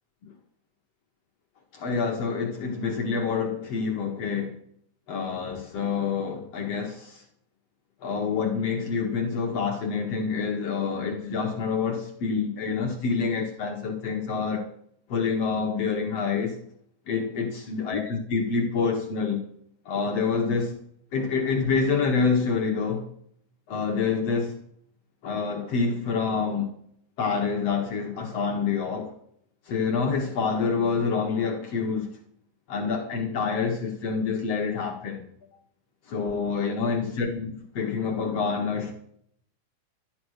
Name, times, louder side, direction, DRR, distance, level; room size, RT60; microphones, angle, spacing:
voice 1, 1.7-4.5 5.1-7.2 8.0-14.7 15.1-16.6 17.1-19.4 19.9-20.8 21.1-23.1 23.7-24.5 25.2-26.7 27.2-29.1 29.7-32.1 32.7-35.3 36.1-38.9, left 5 dB, 55° left, 2.2 m, -27 dB
13.5 x 11.0 x 6.4 m
omnidirectional pair, 3.6 m